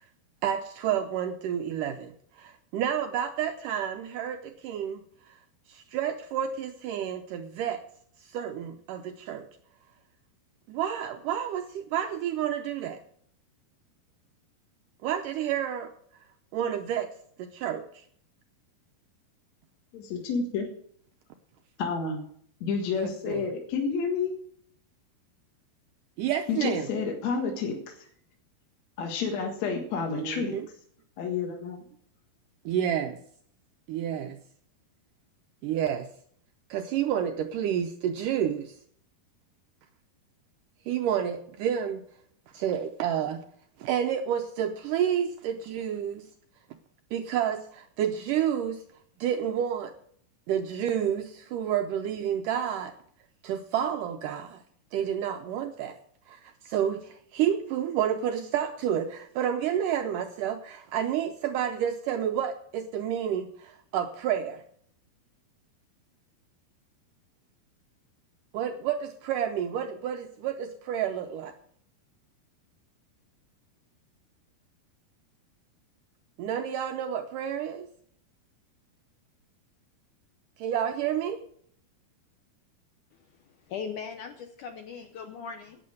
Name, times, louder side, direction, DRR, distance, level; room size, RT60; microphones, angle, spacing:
voice 1, 0.4-5.4 5.7-7.8 8.2-9.5 10.7-13.0 15.0-15.9 16.5-17.1 17.4-18.1 22.9-23.5 26.2-26.9 30.1-30.7 32.7-33.2 33.9-34.4 35.6-36.1 36.7-38.8 40.9-42.0 42.5-43.4 43.8-46.3 47.1-48.8 49.2-49.9 50.5-52.9 53.4-54.6 54.9-56.0 56.3-64.6 68.5-71.5 76.4-77.9 80.6-81.4, right 9 dB, 85° right, 6 dB, 1.9 m, -30 dB
voice 2, 19.9-20.7 21.8-22.2 22.6-24.3 26.5-27.9 29.0-30.5 31.2-31.8, left 5 dB, 55° left, 1 dB, 2.4 m, -30 dB
voice 3, 83.4-85.8, left 6 dB, 70° left, 5 dB, 2.0 m, -39 dB
11.5 x 8.6 x 7.8 m, 0.63 s
omnidirectional pair, 4.6 m